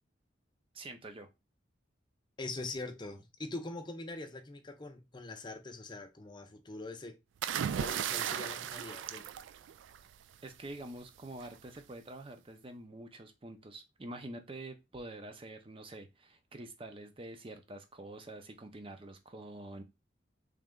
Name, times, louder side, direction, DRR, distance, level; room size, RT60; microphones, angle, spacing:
voice 1, 0.7-1.3 10.4-19.8, right 2 dB, 30° right, 0.6 m, -46 dB
voice 2, 2.4-7.2 7.7-9.3, left 2 dB, 25° left, 0.6 m, -43 dB
sound 1, 7.4-10.2 11.4-11.7, right 9 dB, 90° right, 0.3 m, -36 dB
3.4 x 3.0 x 3.7 m
head